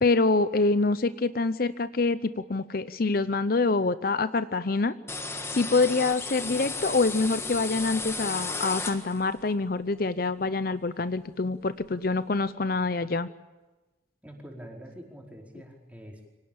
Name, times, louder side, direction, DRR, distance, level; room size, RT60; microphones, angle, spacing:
voice 1, 0.0-4.9 5.5-13.3, left 3 dB, 50° left, 13 dB, 0.7 m, -26 dB
sound 1, 5.1-9.4, left 3 dB, 15° left, 1.6 m, -34 dB
voice 2, 14.2-16.3, equal, 10° right, 0 dB, 4.7 m, -45 dB
25.5 x 18.0 x 8.8 m, 1.2 s
head